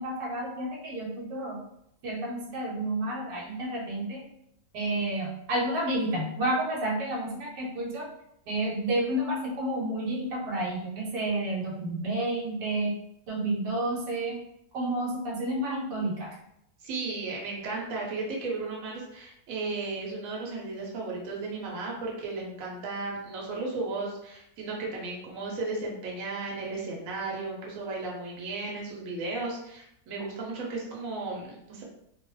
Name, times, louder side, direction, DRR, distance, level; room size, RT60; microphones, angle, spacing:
voice 1, 0.0-1.6 2.0-4.2 4.7-8.1 8.5-12.9 13.3-14.4 14.7-16.3, right 1 dB, 80° right, -3 dB, 1.3 m, -30 dB
voice 2, 16.8-31.8, right 3 dB, 60° right, -3 dB, 1.1 m, -35 dB
2.9 x 2.0 x 3.1 m, 0.76 s
omnidirectional pair, 1.9 m